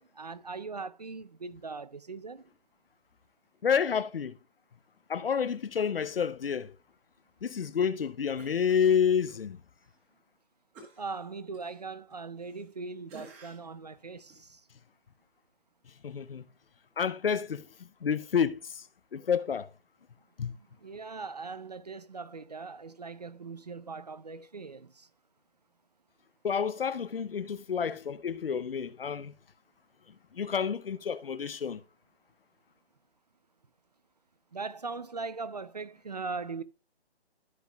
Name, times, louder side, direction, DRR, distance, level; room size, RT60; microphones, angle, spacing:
voice 1, 0.0-2.4 11.0-14.6 20.5-25.1 34.5-36.6, right 4 dB, 40° right, 0.5 m, -40 dB
voice 2, 3.6-4.4 5.1-6.7 7.4-9.6 16.0-16.5 17.0-17.7 18.0-18.9 19.1-19.7 20.4-20.6 26.4-29.3 30.3-31.8, left 7 dB, 60° left, 0.7 m, -29 dB
Cough, 8.4-9.4 9.8-9.9 10.7-12.8 13.1-13.8 14.3-14.4, right 3 dB, 10° right, 1.3 m, -53 dB
14.0 x 5.5 x 2.3 m
hypercardioid pair, 170°, 32 cm